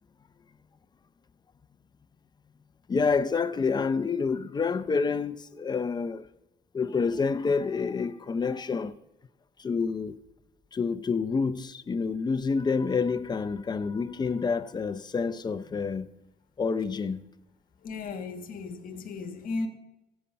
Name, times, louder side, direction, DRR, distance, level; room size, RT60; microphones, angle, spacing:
voice 1, 2.9-6.3 6.7-9.0 9.6-10.2 10.7-16.1 16.6-17.2, left 5 dB, 25° left, 0.6 m, -28 dB
voice 2, 17.8-19.7, left 3 dB, 55° left, 1.5 m, -35 dB
16.0 x 5.4 x 5.7 m
cardioid pair, 110°, 17 cm